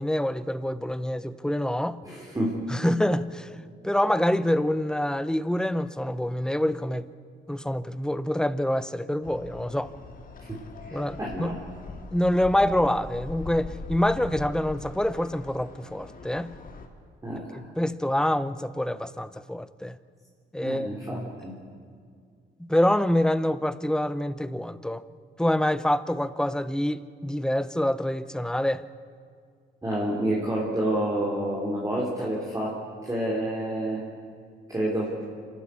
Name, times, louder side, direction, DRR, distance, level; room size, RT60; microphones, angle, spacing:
voice 1, 0.0-2.0 2.7-3.5 3.8-7.1 7.5-9.9 10.9-11.5 12.1-16.5 17.8-20.0 20.5-21.3 22.6-25.0 25.4-28.8, left 1 dB, 5° left, 15 dB, 0.7 m, -26 dB
voice 2, 2.0-2.5 10.4-11.5 17.2-17.6 20.6-21.5 29.8-32.7 33.0-34.0 34.7-35.1, right 1 dB, 15° right, -4 dB, 3.7 m, -29 dB
sound 1, 9.2-16.9, left 4 dB, 45° left, 2.2 m, -42 dB
26.0 x 12.0 x 8.4 m, 2.1 s
cardioid pair, 90°, 20 cm